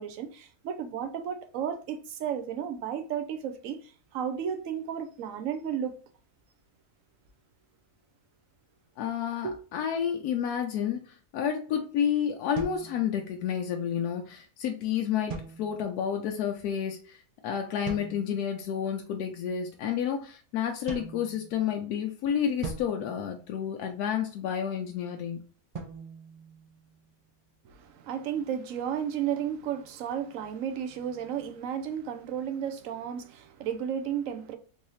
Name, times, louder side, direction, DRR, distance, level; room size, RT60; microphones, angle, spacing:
voice 1, 0.0-5.9 9.4-9.6 27.6-34.6, right 8 dB, 70° right, 0.9 m, -33 dB
voice 2, 9.0-15.3 15.6-17.2 17.4-25.4, left 8 dB, 85° left, 1.1 m, -30 dB
sound 1, 12.5-13.6 15.3-16.1 17.8-18.5 20.9-21.9 22.6-24.1 25.7-27.2, right 4 dB, 55° right, 0.4 m, -42 dB
3.9 x 2.7 x 3.0 m
omnidirectional pair, 1.6 m